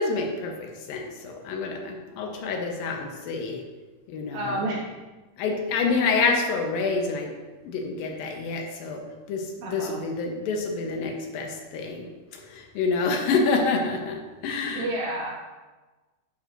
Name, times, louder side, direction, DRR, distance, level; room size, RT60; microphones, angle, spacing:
voice 1, 0.0-3.6 4.1-4.7 5.4-7.3 7.6-14.9, left 4 dB, 80° left, 2 dB, 2.6 m, -28 dB
voice 2, 4.3-4.8 9.6-10.0 14.8-15.3, right 1 dB, 80° right, -4 dB, 3.6 m, -29 dB
10.0 x 6.2 x 2.6 m, 1.2 s
omnidirectional pair, 4.1 m